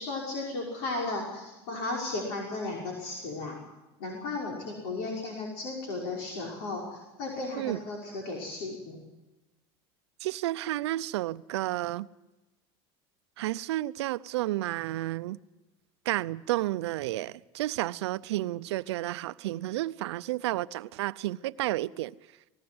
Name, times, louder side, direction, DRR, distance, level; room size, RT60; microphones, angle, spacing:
voice 1, 0.0-3.6 4.0-9.0, left 2 dB, 75° left, 5.7 m, -35 dB
voice 2, 10.2-12.1 13.4-15.4 16.1-22.1, right 16 dB, 90° right, 0.6 m, -31 dB
20.0 x 18.0 x 8.0 m
supercardioid pair, 120°, 14 cm